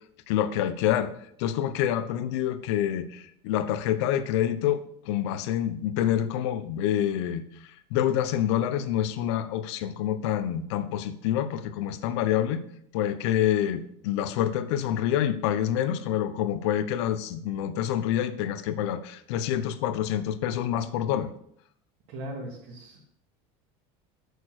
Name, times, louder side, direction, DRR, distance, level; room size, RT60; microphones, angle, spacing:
voice 1, 0.3-1.1 1.4-7.4 7.9-12.6 12.9-21.3, left 10 dB, 75° left, 12 dB, 1.0 m, -27 dB
voice 2, 22.1-23.0, right 1 dB, 60° right, -5 dB, 2.8 m, -38 dB
9.2 x 6.8 x 6.5 m, 0.69 s
cardioid pair, 165°, 15 cm